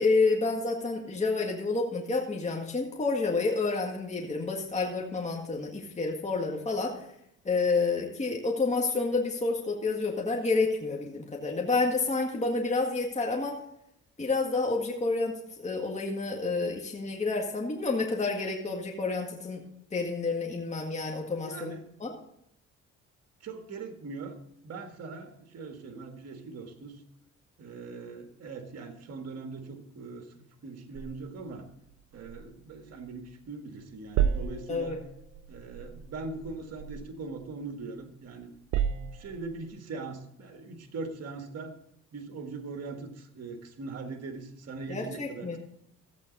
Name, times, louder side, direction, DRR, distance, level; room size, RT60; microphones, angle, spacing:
voice 1, 0.0-7.0 7.5-13.6 14.2-19.6 19.9-21.7 22.0-22.1 34.7-35.0 44.9-45.6, left 3 dB, 25° left, 0 dB, 1.8 m, -29 dB
voice 2, 21.4-21.8 23.4-24.4 24.6-27.0 27.6-31.7 32.1-35.0 35.5-38.5 38.8-41.7 42.1-45.6, right 3 dB, 55° right, 5 dB, 1.8 m, -41 dB
sound 1, 30.9-33.5 33.8-38.0 38.4-39.7, right 8 dB, 75° right, 0.6 m, -34 dB
15.0 x 8.2 x 4.0 m, 0.78 s
cardioid pair, 90°, 30 cm